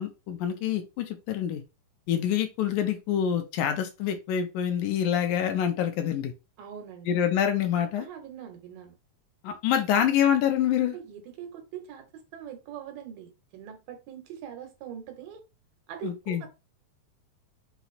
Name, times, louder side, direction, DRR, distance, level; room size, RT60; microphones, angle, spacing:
voice 1, 0.0-1.6 2.1-6.3 7.1-8.1 9.4-11.0 16.0-16.5, left 9 dB, 80° left, 6 dB, 2.0 m, -26 dB
voice 2, 6.6-7.1 8.0-9.0 10.8-12.0 12.3-15.4 15.9-16.5, right 9 dB, 85° right, 5 dB, 2.7 m, -42 dB
5.8 x 2.0 x 4.1 m, 0.28 s
omnidirectional pair, 3.8 m